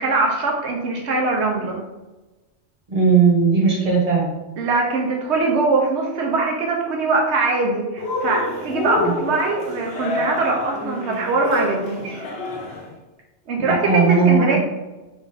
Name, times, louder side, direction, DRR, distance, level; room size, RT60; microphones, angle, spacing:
voice 1, 0.0-1.8 4.6-12.3 13.5-14.6, right 3 dB, 90° right, 0 dB, 1.1 m, -22 dB
voice 2, 2.9-4.3 9.0-9.1 13.6-14.6, right 5 dB, 35° right, -3 dB, 1.3 m, -17 dB
Cheering, 8.0-12.9, left 2 dB, 70° left, 1.0 m, -28 dB
3.7 x 3.4 x 4.1 m, 1.1 s
omnidirectional pair, 1.1 m